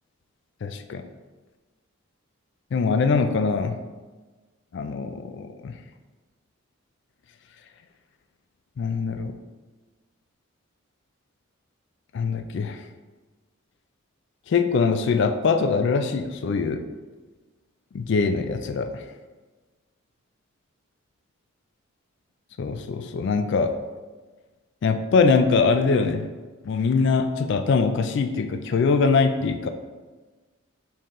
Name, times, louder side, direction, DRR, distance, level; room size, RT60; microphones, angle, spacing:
voice 1, 0.6-1.0 2.7-3.8 4.7-5.7 8.8-9.3 12.1-12.8 14.5-16.8 17.9-19.0 22.6-23.7 24.8-26.3 26.6-29.7, left 4 dB, 55° left, 8 dB, 0.3 m, -23 dB
4.4 x 3.7 x 3.1 m, 1.3 s
head